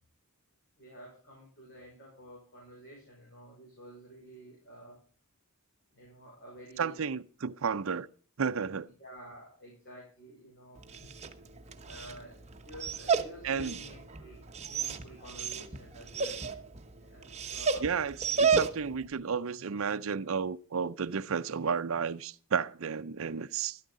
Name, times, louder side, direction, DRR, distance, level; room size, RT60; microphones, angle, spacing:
voice 1, 0.8-5.0 5.9-7.0 9.0-11.1 11.7-16.4 17.0-17.9, equal, 50° left, 5.6 m, -50 dB
voice 2, 6.8-8.1 8.4-8.9 13.4-13.8 17.8-23.8, right 6 dB, 65° right, 0.5 m, -32 dB
Dog, 10.8-19.0, right 5 dB, 30° right, 1.1 m, -33 dB
13.0 x 12.5 x 3.7 m
head